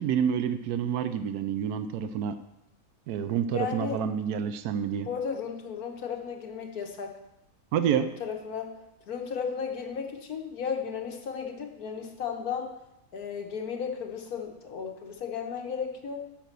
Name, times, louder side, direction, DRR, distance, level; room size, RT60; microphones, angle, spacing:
voice 1, 0.0-2.4 3.1-5.1 7.7-8.1, right 8 dB, 90° right, 10 dB, 1.2 m, -28 dB
voice 2, 3.5-4.0 5.0-7.1 8.0-8.7 9.1-12.7 13.1-16.2, left 6 dB, 80° left, 3 dB, 1.7 m, -34 dB
8.6 x 6.1 x 6.8 m, 0.87 s
omnidirectional pair, 1.6 m